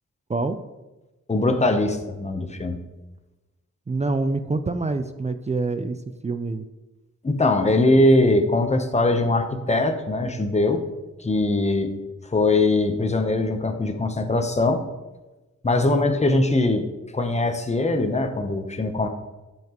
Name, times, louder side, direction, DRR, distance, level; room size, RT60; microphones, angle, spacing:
voice 1, 1.3-2.8 7.2-10.8 11.2-11.9 12.3-14.8 15.6-16.9 17.1-19.1, left 2 dB, 25° left, 7 dB, 0.8 m, -21 dB
voice 2, 3.9-6.7, right 3 dB, 25° right, 9 dB, 0.4 m, -26 dB
10.5 x 5.7 x 2.9 m, 1.1 s
wide cardioid pair, 110°, 30 cm